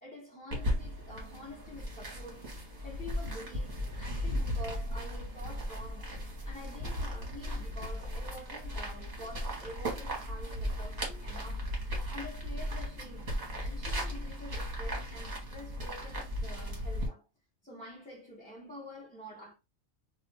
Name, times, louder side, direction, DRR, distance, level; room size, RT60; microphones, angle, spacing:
voice 1, 0.0-2.6 2.8-17.3 17.6-19.5, left 1 dB, 5° left, 0.8 m, -48 dB
sound 1, 0.5-17.1, equal, 35° right, 1.0 m, -36 dB
2.4 x 2.4 x 3.2 m
omnidirectional pair, 1.4 m